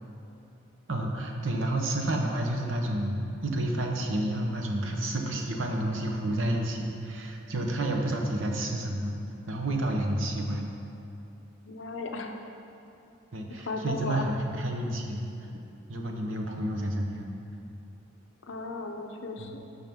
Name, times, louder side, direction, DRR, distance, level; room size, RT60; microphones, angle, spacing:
voice 1, 0.9-9.2 9.5-10.7 13.3-15.2 15.9-17.2 19.4-19.5, right 1 dB, 70° right, 2 dB, 0.9 m, -30 dB
voice 2, 11.6-12.3 13.7-14.3 18.5-19.6, left 3 dB, 65° left, 3 dB, 0.7 m, -35 dB
11.5 x 5.7 x 3.7 m, 2.8 s
head